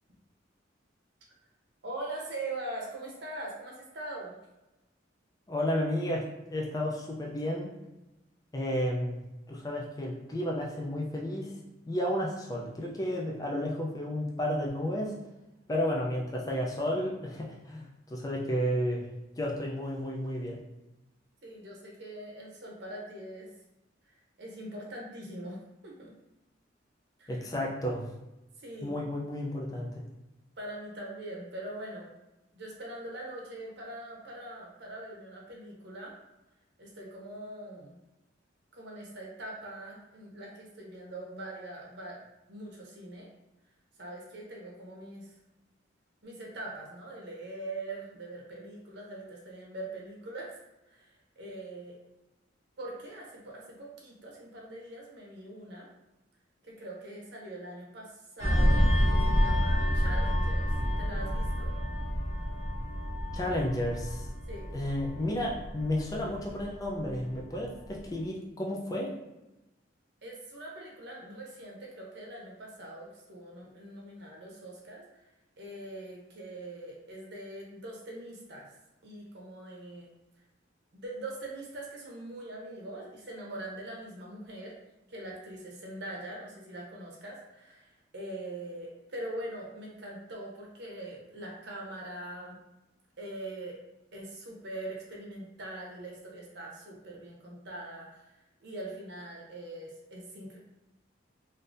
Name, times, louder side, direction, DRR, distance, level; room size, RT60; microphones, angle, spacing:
voice 1, 1.8-4.3 21.4-23.5 24.4-26.1 27.2-27.4 28.6-28.9 30.6-32.1 32.5-36.1 36.8-38.0 38.7-42.2 42.5-43.3 44.0-45.3 46.2-50.6 50.9-52.0 52.8-55.9 56.6-60.7 61.0-61.7 64.5-64.7 70.2-75.1 75.6-78.7 79.0-80.1 80.9-84.8 85.1-92.6 93.2-93.8 94.1-98.3 98.6-100.6, right 1 dB, 60° right, -2 dB, 0.8 m, -42 dB
voice 2, 5.5-7.7 8.5-9.2 9.5-11.5 11.9-15.1 15.7-17.8 18.1-19.1 19.4-20.6 27.3-28.0 28.8-29.9 63.3-64.3 64.7-69.1, left 1 dB, 20° left, -2 dB, 0.4 m, -32 dB
sound 1, 58.4-67.4 67.8-68.0, equal, 35° left, 0.9 m, -28 dB
3.7 x 2.7 x 2.5 m, 0.97 s
head